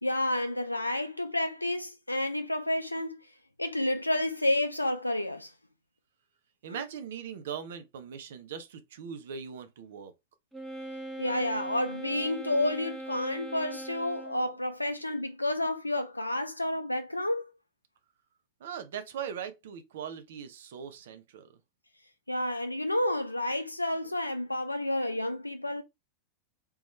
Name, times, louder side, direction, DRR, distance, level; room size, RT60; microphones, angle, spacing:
voice 1, 0.0-3.2 3.6-5.5 6.7-6.8 11.2-17.5 22.3-25.8, left 1 dB, 85° left, 0.4 m, -30 dB
voice 2, 6.6-10.1 18.6-21.6, right 7 dB, 60° right, 0.6 m, -40 dB
Wind instrument woodwind instrument, 10.5-14.6, right 1 dB, 5° right, 0.9 m, -40 dB
3.5 x 3.0 x 3.0 m
figure-of-eight pair, 90°, 0 cm